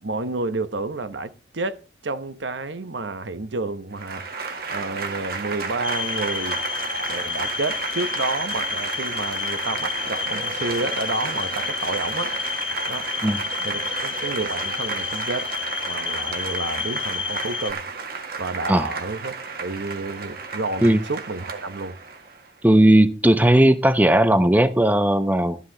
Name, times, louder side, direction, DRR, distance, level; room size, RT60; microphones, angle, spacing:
voice 1, 0.0-4.3 4.7-6.6 7.0-12.3 12.9-13.1 13.6-15.5 15.9-17.8 18.4-22.0, right 3 dB, 75° right, 1.0 m, -30 dB
Applause / Crowd, 3.9-22.5, right 4 dB, 55° right, 1.7 m, -32 dB
sound 1, 5.8-17.7, left 7 dB, 30° left, 0.8 m, -30 dB
voice 2, 22.6-25.6, right 1 dB, 10° right, 0.7 m, -16 dB
13.0 x 11.5 x 3.8 m
head